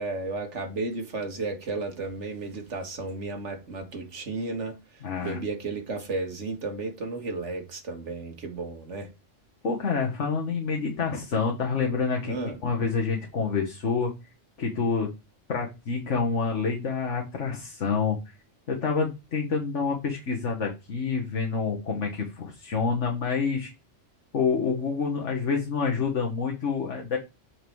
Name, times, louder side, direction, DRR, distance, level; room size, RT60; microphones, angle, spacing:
voice 1, 0.0-9.1 12.3-12.6, right 3 dB, 70° right, 2.0 m, -33 dB
voice 2, 5.0-5.4 9.6-12.3 12.6-14.1 14.6-15.1 15.5-18.2 18.7-23.7 24.3-27.2, left 5 dB, 70° left, 1.7 m, -27 dB
7.2 x 4.8 x 4.7 m
omnidirectional pair, 1.3 m